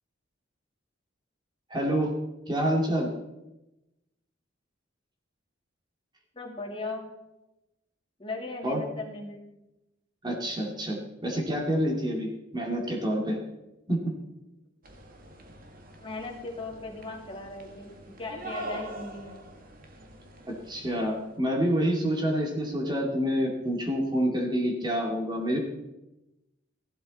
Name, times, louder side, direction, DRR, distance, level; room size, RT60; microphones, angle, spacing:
voice 1, 1.7-2.1 2.5-3.1 8.6-8.8 10.2-13.4 13.9-14.0 20.5-25.6, equal, 20° right, 0 dB, 2.3 m, -27 dB
voice 2, 6.3-7.0 8.2-9.4 16.0-19.4, left 3 dB, 25° left, 0 dB, 2.5 m, -37 dB
sound 1, 14.8-21.3, right 1 dB, 45° right, 1.7 m, -44 dB
15.0 x 12.5 x 4.2 m, 0.97 s
head